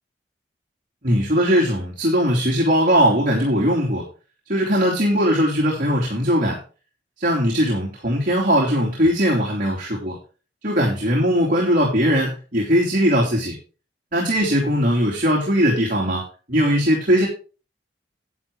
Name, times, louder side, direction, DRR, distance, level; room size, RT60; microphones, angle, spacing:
voice 1, 1.0-4.0 4.5-6.6 7.2-10.2 10.6-13.5 14.1-17.3, equal, 50° right, -3 dB, 2.9 m, -19 dB
11.0 x 8.4 x 3.7 m, 0.35 s
head